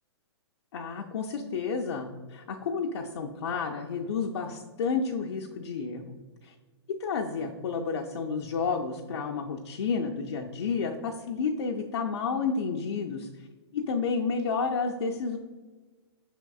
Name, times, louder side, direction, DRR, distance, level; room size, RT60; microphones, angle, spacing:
voice 1, 0.7-6.1 6.4-6.5 7.0-13.3 13.7-15.4, left 5 dB, 75° left, 0 dB, 0.4 m, -31 dB
5.7 x 3.5 x 2.3 m, 1.3 s
hypercardioid pair, 130°, 14 cm